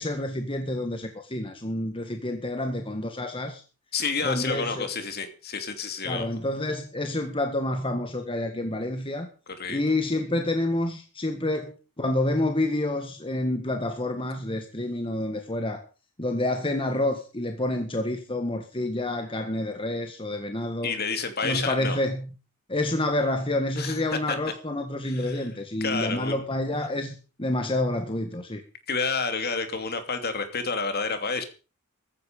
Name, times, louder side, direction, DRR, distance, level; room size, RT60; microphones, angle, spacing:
voice 1, 0.0-3.6 4.2-4.9 6.0-9.3 9.7-15.8 16.2-20.9 21.4-22.3 22.7-28.6, left 1 dB, 25° left, 6 dB, 1.7 m, -28 dB
voice 2, 3.9-6.3 9.5-9.8 20.8-22.0 23.8-24.0 24.3-24.4 25.0-25.5 25.8-26.4 28.9-31.4, left 4 dB, 45° left, 8 dB, 2.9 m, -29 dB
15.0 x 13.5 x 5.3 m, 0.35 s
head